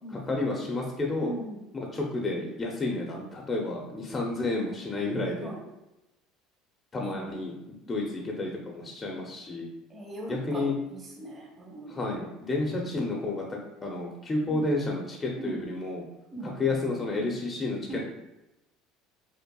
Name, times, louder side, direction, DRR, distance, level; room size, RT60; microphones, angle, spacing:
voice 1, 0.1-1.3 1.7-5.5 6.9-9.7 10.3-10.8 11.9-16.1 16.4-18.1, left 2 dB, 25° left, 0 dB, 0.6 m, -31 dB
voice 2, 1.2-1.6 5.4-5.6 7.0-7.2 9.9-11.9 14.4-14.7 15.4-15.6 16.3-16.6 17.9-18.1, right 2 dB, 25° right, -2 dB, 1.1 m, -39 dB
5.3 x 2.1 x 2.3 m, 0.94 s
supercardioid pair, 115°, 0 cm